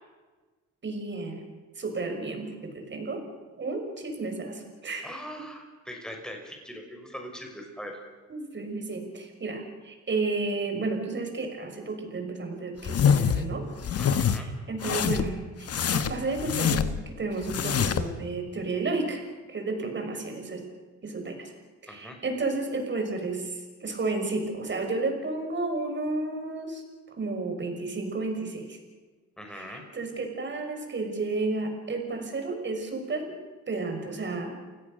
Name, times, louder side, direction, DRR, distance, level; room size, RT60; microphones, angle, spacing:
voice 1, 0.8-1.4 1.8-3.2 3.6-5.1 8.3-19.2 19.5-20.6 21.0-21.5 21.8-26.8 27.1-28.8 29.5-33.4 33.7-34.5, right 3 dB, 40° right, 5 dB, 6.1 m, -32 dB
voice 2, 5.0-8.0 14.0-14.5 21.9-22.2 29.4-29.8, equal, ahead, 2 dB, 6.0 m, -41 dB
sound 1, 12.8-13.4 13.8-14.4 14.8-15.3 15.7-17.0 17.4-18.1, left 7 dB, 50° left, 1.5 m, -25 dB
30.0 x 17.0 x 6.7 m, 1.3 s
cardioid pair, 90°, 30 cm